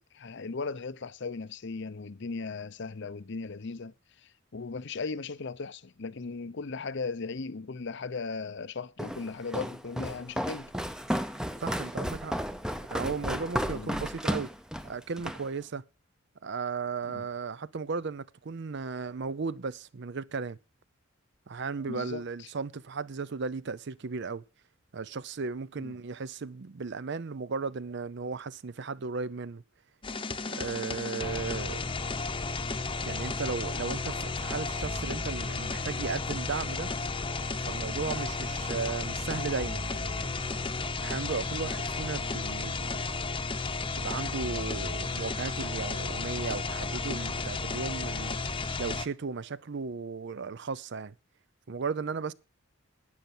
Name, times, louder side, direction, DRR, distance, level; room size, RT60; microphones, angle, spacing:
voice 1, 0.0-3.9 4.5-10.7 13.7-13.9 17.1-17.3 21.9-22.2 25.8-25.9, left 4 dB, 60° left, 0.7 m, -37 dB
Walk footsteps, 9.0-15.5, equal, 5° right, 0.7 m, -33 dB
voice 2, 11.6-12.4 12.8-14.5 14.8-15.8 16.4-20.6 21.5-24.4 24.9-29.6 30.5-31.8 33.0-36.9 37.7-40.4 41.0-43.0 44.0-48.4 48.8-51.1 51.7-52.3, right 5 dB, 55° right, 0.5 m, -35 dB
sound 1, 30.0-49.1, left 3 dB, 25° left, 0.9 m, -33 dB
12.0 x 9.0 x 6.0 m
head